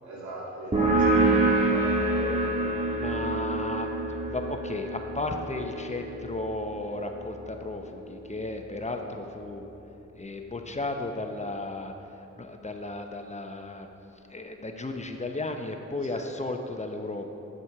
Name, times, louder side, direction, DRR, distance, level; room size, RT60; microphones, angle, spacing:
voice 1, 0.0-2.5 16.0-16.2, right 2 dB, 90° right, -5 dB, 2.1 m, -39 dB
sound 1, 0.7-8.0, right 2 dB, 25° right, 1.8 m, -27 dB
voice 2, 3.0-9.6 10.2-11.9 12.4-13.9 14.3-17.3, left 2 dB, 25° left, 4 dB, 0.8 m, -34 dB
8.0 x 7.5 x 4.7 m, 2.9 s
cardioid pair, 55°, 29 cm